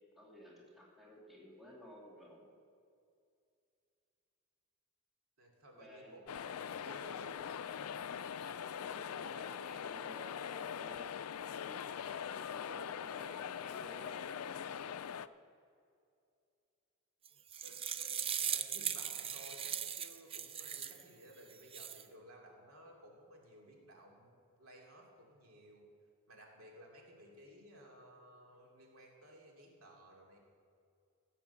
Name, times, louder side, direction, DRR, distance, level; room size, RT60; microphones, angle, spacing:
voice 1, 0.2-2.5 5.7-6.1 8.8-11.0 11.5-14.3, equal, ahead, -5 dB, 2.6 m, -55 dB
voice 2, 5.4-7.4 17.6-25.9 26.3-30.4, right 1 dB, 70° right, 0 dB, 2.7 m, -57 dB
sound 1, 6.3-15.3, left 8 dB, 80° left, 0.4 m, -42 dB
sound 2, 17.2-21.0 21.5-22.0, right 8 dB, 25° right, 0.5 m, -39 dB
16.0 x 7.9 x 7.1 m, 2.4 s
head